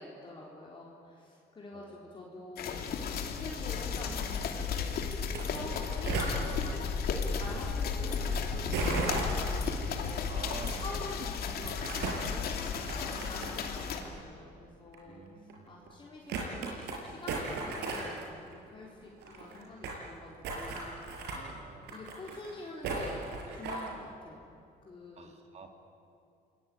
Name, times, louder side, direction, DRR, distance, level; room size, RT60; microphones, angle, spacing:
voice 1, 0.0-2.8 3.1-4.9 5.2-10.3 10.8-15.2 15.7-21.2 21.9-23.3 23.5-24.5 24.8-25.3, left 2 dB, 30° left, -3 dB, 4.2 m, -46 dB
voice 2, 1.7-2.1 5.4-5.7 9.0-9.3 10.3-11.0 15.0-16.1 19.5-19.8 21.3-21.9 23.5-23.6 25.2-25.8, right 4 dB, 40° right, 4 dB, 2.8 m, -49 dB
sound 1, 2.6-14.0, left 6 dB, 65° left, 2.9 m, -34 dB
sound 2, 5.2-5.4 5.6-6.3 8.7-9.6 10.5-10.7 11.6-12.3 12.7-13.7 14.0-14.1 14.9-15.0 15.5-15.6 15.9-16.0 16.3-17.0 17.3-18.2 18.5-18.6 18.8-18.9 19.1-20.0 20.4-21.4 21.8-22.5 22.8-23.9, right 3 dB, 80° right, 5.9 m, -35 dB
28.5 x 20.0 x 8.7 m, 2.5 s
cardioid pair, 110°, 17 cm